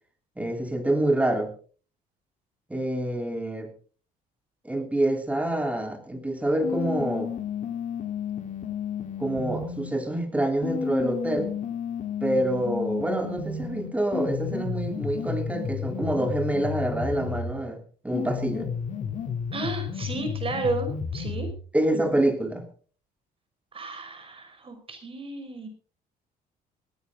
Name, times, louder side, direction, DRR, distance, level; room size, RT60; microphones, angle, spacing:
voice 1, 0.4-1.5 2.7-3.7 4.6-7.3 9.2-11.5 12.2-18.7 21.7-22.7, right 1 dB, 10° right, 5 dB, 3.6 m, -26 dB
sound 1, 6.6-9.9 10.6-17.6 18.1-21.6, left 7 dB, 50° left, 3.3 m, -32 dB
voice 2, 19.5-21.5 23.7-25.7, right 3 dB, 35° right, 6 dB, 5.6 m, -33 dB
18.5 x 15.0 x 3.9 m, 0.41 s
cardioid pair, 110°, 17 cm